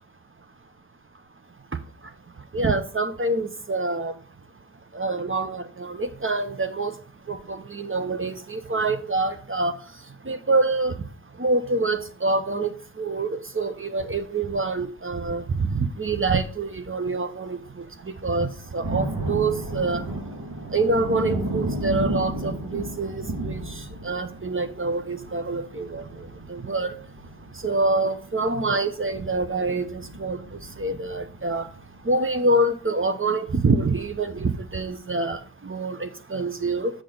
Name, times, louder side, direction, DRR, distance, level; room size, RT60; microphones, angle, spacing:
voice 1, 2.5-4.1 4.9-6.9 7.3-9.7 10.3-10.9 11.4-12.7 13.0-17.6 18.2-20.0 20.7-23.6 24.0-26.0 26.5-26.9 27.6-30.4 30.8-31.7 32.1-36.9, right 2 dB, 30° right, 9 dB, 0.9 m, -26 dB
sound 1, 17.9-18.0 18.5-32.0 32.4-32.5, right 2 dB, 65° right, 2.3 m, -33 dB
6.7 x 6.4 x 3.9 m, 0.41 s
cardioid pair, 45°, 40 cm